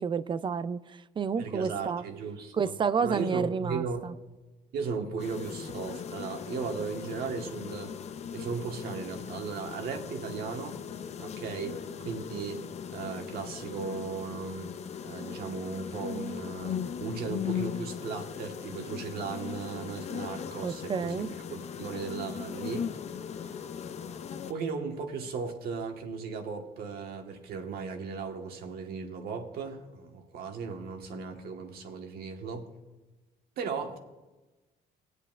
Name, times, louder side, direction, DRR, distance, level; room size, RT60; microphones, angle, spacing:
voice 1, 0.0-2.0 2.5-4.1 20.6-21.3, right 6 dB, 30° right, 0.4 m, -30 dB
voice 2, 1.4-2.8 3.0-4.1 4.7-7.9 8.3-10.8 11.2-12.7 12.9-14.8 15.0-22.9 24.5-32.7 33.6-34.0, right 5 dB, 65° right, 1.4 m, -36 dB
sound 1, 5.2-24.5, left 8 dB, 40° left, 0.5 m, -38 dB
18.5 x 8.1 x 2.4 m
cardioid pair, 110°, 17 cm